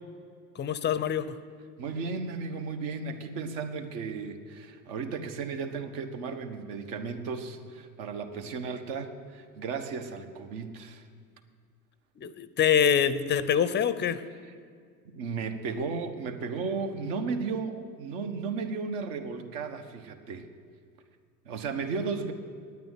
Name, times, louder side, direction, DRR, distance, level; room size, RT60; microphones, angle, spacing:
voice 1, 0.6-1.4 12.2-14.2, left 8 dB, 20° left, 14 dB, 0.6 m, -25 dB
voice 2, 1.8-11.0 15.1-20.5 21.4-22.3, right 4 dB, 55° right, 6 dB, 1.5 m, -34 dB
9.6 x 9.3 x 9.9 m, 2.1 s
hypercardioid pair, 90°, 49 cm